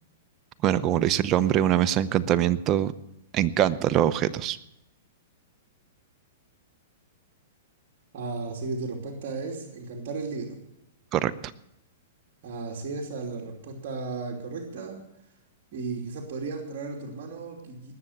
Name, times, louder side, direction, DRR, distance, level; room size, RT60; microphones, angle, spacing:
voice 1, 0.6-2.9 3.3-4.6 11.1-11.3, right 11 dB, 30° right, 12 dB, 0.7 m, -23 dB
voice 2, 8.1-10.6 12.4-15.0 15.7-17.9, right 4 dB, 50° right, -1 dB, 2.8 m, -35 dB
19.5 x 7.0 x 7.9 m, 0.84 s
hypercardioid pair, 145°, 0 cm